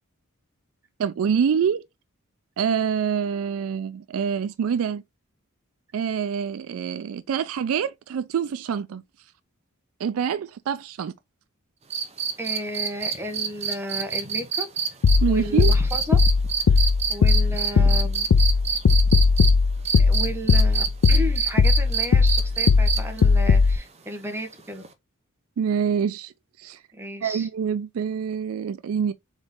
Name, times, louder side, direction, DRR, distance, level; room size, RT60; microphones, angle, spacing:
voice 1, 1.0-1.8 2.6-5.0 5.9-9.0 10.0-11.1 15.2-15.7 25.6-26.3 26.6-26.8 27.2-29.1, right 7 dB, 65° right, 0.3 m, -26 dB
sound 1, 11.9-19.5 19.9-23.2 24.8-24.9, right 6 dB, 30° right, 0.6 m, -26 dB
voice 2, 12.4-14.7 15.3-16.2 17.1-18.3 19.9-24.8 26.9-27.5, equal, 10° right, 0.9 m, -33 dB
sound 2, 15.0-23.8, left 4 dB, 70° left, 0.4 m, -18 dB
4.0 x 3.7 x 3.6 m
head